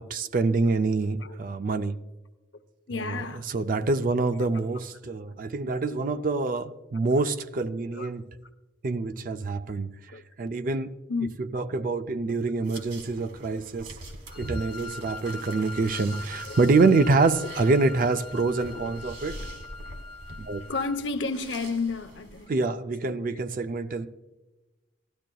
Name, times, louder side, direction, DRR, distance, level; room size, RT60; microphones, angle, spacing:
voice 1, 0.0-2.0 2.9-8.2 8.8-9.9 10.4-10.9 11.4-13.9 14.4-19.4 20.4-20.6 22.5-24.1, right 3 dB, 45° right, 0.4 m, -26 dB
voice 2, 2.9-3.4 4.4-4.7 7.9-8.1 10.1-10.2 11.1-11.7 12.7-13.1 14.3-14.5 15.9-16.0 16.5-16.6 20.7-22.5 23.0-23.4, left 4 dB, 70° left, 0.7 m, -33 dB
sound 1, 12.6-22.5, right 1 dB, 65° right, 1.5 m, -43 dB
Wind instrument woodwind instrument, 14.3-21.0, left 3 dB, 30° left, 0.6 m, -42 dB
16.5 x 12.0 x 2.3 m
head